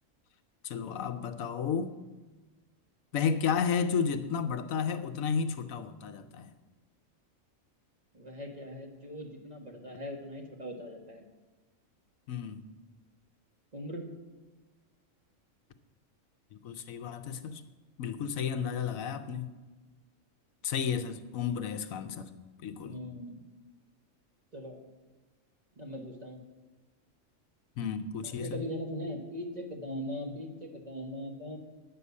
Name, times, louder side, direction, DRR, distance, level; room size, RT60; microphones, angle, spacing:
voice 1, 0.6-2.0 3.1-6.5 12.3-12.6 16.6-17.6 18.0-19.5 20.6-22.3 22.6-23.0 27.8-28.6, left 6 dB, 80° left, 9 dB, 1.2 m, -32 dB
voice 2, 8.1-11.3 13.7-14.1 22.8-23.4 24.5-24.8 25.8-26.4 28.2-31.6, equal, 30° right, 1 dB, 1.6 m, -40 dB
10.0 x 6.9 x 8.3 m, 1.3 s
omnidirectional pair, 1.4 m